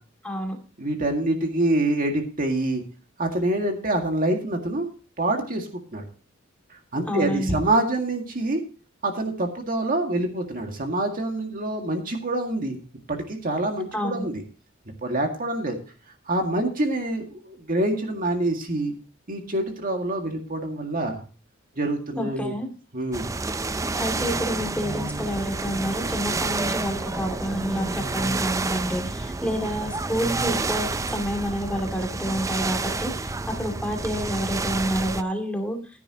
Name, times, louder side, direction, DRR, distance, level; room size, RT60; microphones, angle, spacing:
voice 1, 0.2-0.6 7.1-7.6 13.9-14.3 22.2-22.7 24.0-35.8, equal, 5° left, 3 dB, 2.4 m, -29 dB
voice 2, 0.8-2.8 3.2-4.9 5.2-6.1 6.7-8.6 9.0-12.8 13.1-14.4 15.0-15.8 16.3-18.9 19.3-21.2 21.8-22.5 22.9-23.3, right 1 dB, 45° right, 3 dB, 2.0 m, -26 dB
sound 1, 23.1-35.2, right 3 dB, 15° right, 0.4 m, -29 dB
15.5 x 10.0 x 2.9 m, 0.36 s
head